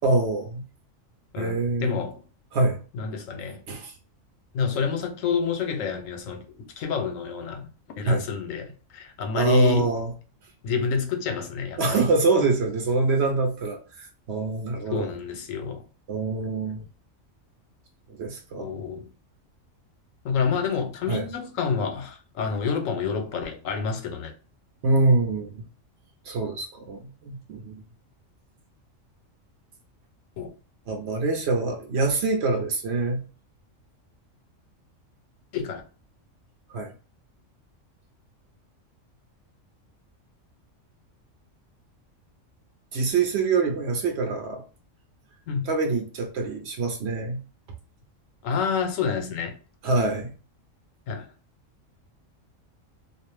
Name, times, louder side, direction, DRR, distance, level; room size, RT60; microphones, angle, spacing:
voice 1, 0.0-0.6 1.4-2.0 2.5-2.8 3.7-3.9 8.1-8.2 9.4-10.1 11.8-15.1 16.1-16.8 18.2-18.7 21.1-21.2 24.8-25.6 26.3-27.8 30.9-33.2 36.7-36.9 42.9-44.6 45.7-47.4 49.8-50.3, right 3 dB, 65° right, 0.8 m, -25 dB
voice 2, 1.3-2.2 2.9-3.6 4.5-6.5 6.8-7.7 8.0-9.9 10.6-12.0 14.9-15.8 18.6-19.1 20.2-24.3 30.4-30.5 35.5-35.8 45.5-45.7 48.4-49.6 51.1-51.3, left 6 dB, 80° left, 1.0 m, -28 dB
2.4 x 2.0 x 3.0 m
omnidirectional pair, 1.4 m